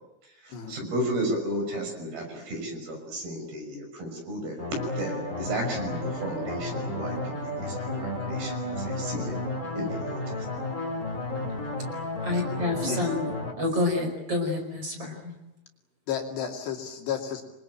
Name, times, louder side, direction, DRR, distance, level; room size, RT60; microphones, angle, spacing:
voice 1, 0.2-4.6 5.0-5.1 5.4-9.3 9.7-10.5, right 1 dB, 50° right, 3 dB, 7.9 m, -33 dB
sound 1, 4.6-13.5, left 1 dB, 20° left, 4.5 m, -32 dB
voice 2, 12.2-13.3 13.6-15.4, left 2 dB, 30° right, 4 dB, 5.7 m, -28 dB
voice 3, 16.1-17.4, left 8 dB, 65° left, 2 dB, 4.6 m, -32 dB
27.0 x 23.0 x 8.9 m, 0.92 s
omnidirectional pair, 5.6 m